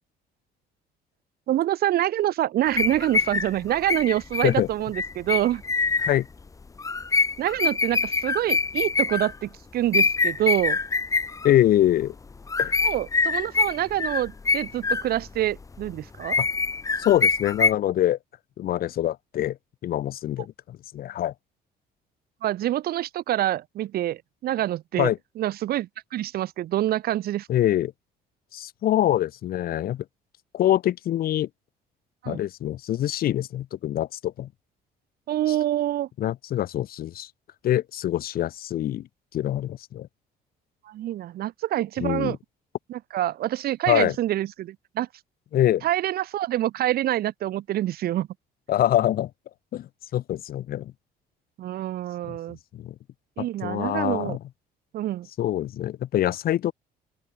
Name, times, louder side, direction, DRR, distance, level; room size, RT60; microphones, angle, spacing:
voice 1, 1.5-5.6 7.4-10.8 12.8-16.4 22.4-27.5 32.2-32.4 35.3-36.1 40.8-42.4 42.9-45.1 45.8-48.3 51.6-52.6 53.4-54.4 54.9-55.3, right 13 dB, 65° right, 1.5 m, -26 dB
sound 1, 2.7-6.1 6.8-9.3 9.9-11.5 12.3-15.4 15.7-17.7, left 4 dB, 20° left, 0.8 m, -24 dB
voice 2, 11.4-12.1 12.6-12.8 16.4-16.5 17.0-18.2 18.6-19.6 19.8-21.3 25.0-25.2 27.5-27.9 28.5-30.0 30.5-31.5 32.3-34.5 36.2-37.3 37.6-39.1 39.3-40.1 42.0-42.4 43.9-44.1 45.5-45.8 48.7-49.3 49.7-50.9 52.7-52.9 53.4-54.4 55.4-56.7, left 12 dB, 60° left, 1.8 m, -24 dB
open air
cardioid pair, 110°, 17 cm